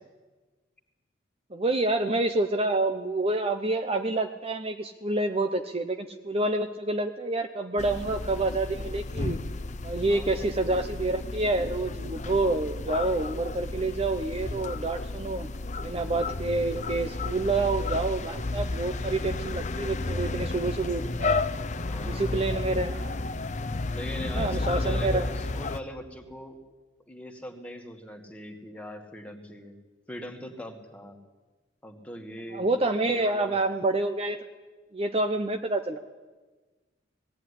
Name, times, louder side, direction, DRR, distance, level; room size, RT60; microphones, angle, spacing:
voice 1, 1.5-9.4 9.8-15.5 15.8-21.5 22.0-23.2 24.3-25.3 32.5-34.4 34.9-36.0, right 2 dB, 30° right, 6 dB, 0.8 m, -28 dB
sound 1, 7.8-25.8, left 3 dB, 40° left, 0.7 m, -32 dB
voice 2, 9.9-10.7 21.9-22.4 23.9-26.6 27.1-29.8 30.1-31.2 31.8-32.7 33.0-33.6, equal, 5° left, 3 dB, 2.2 m, -41 dB
18.5 x 17.0 x 10.0 m, 1.3 s
head